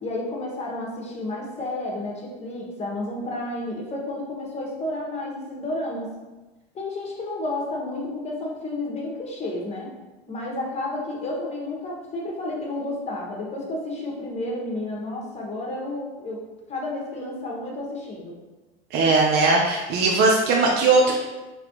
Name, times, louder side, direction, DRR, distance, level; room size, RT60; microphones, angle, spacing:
voice 1, 0.0-6.1 6.7-9.9 10.3-16.4 16.7-18.3, left 2 dB, 30° left, -2 dB, 1.2 m, -31 dB
voice 2, 18.9-21.2, right 3 dB, 55° right, -1 dB, 0.6 m, -19 dB
4.2 x 3.4 x 3.0 m, 1.1 s
supercardioid pair, 115°, 21 cm